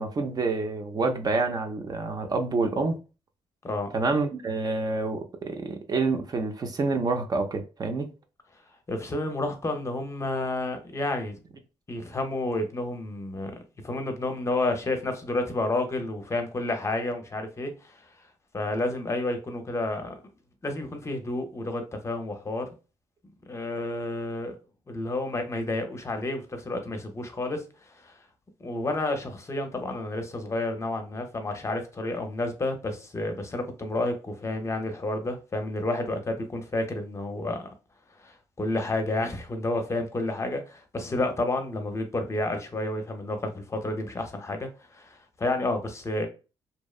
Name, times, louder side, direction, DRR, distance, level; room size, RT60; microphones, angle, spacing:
voice 1, 0.0-3.0 3.9-8.1, right 3 dB, 35° right, 0.4 m, -27 dB
voice 2, 8.9-11.4 11.9-13.6 13.8-18.0 18.5-20.2 20.6-22.7 23.5-24.6 24.9-27.6 27.9-28.1 28.6-37.7 38.2-46.3, left 2 dB, 25° left, 0.6 m, -30 dB
2.7 x 2.0 x 2.3 m
cardioid pair, 85°, 11 cm